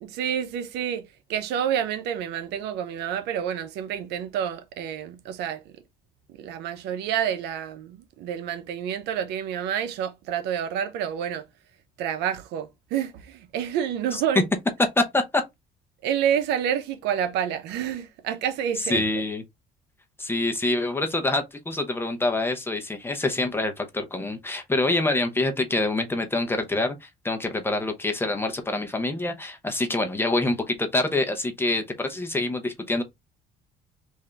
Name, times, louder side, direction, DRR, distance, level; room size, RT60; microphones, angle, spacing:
voice 1, 0.0-5.8 6.4-11.4 12.0-14.4 16.0-19.0, right 9 dB, 85° right, 0.7 m, -28 dB
voice 2, 18.9-19.4 20.2-33.0, left 2 dB, 15° left, 0.8 m, -26 dB
3.6 x 2.6 x 3.3 m
cardioid pair, 110°, 17 cm